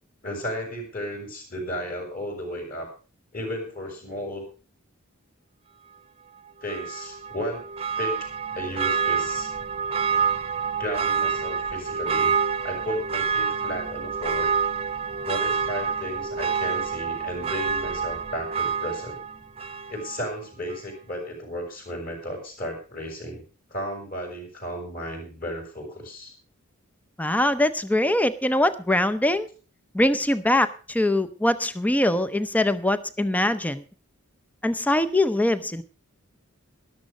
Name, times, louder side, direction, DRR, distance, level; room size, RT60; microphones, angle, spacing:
voice 1, 0.2-2.9 3.3-4.4 6.6-7.6 8.0-9.5 10.3-10.4 10.8-12.3 12.6-14.5 15.3-19.2 19.9-26.3, equal, 45° left, 2 dB, 6.2 m, -34 dB
Church bell, 6.7-20.3 20.7-20.8, right 6 dB, 25° right, 0.8 m, -27 dB
voice 2, 27.2-29.5 29.9-33.8 34.6-35.8, left 1 dB, 5° left, 13 dB, 0.6 m, -23 dB
13.0 x 11.5 x 5.1 m, 0.36 s
head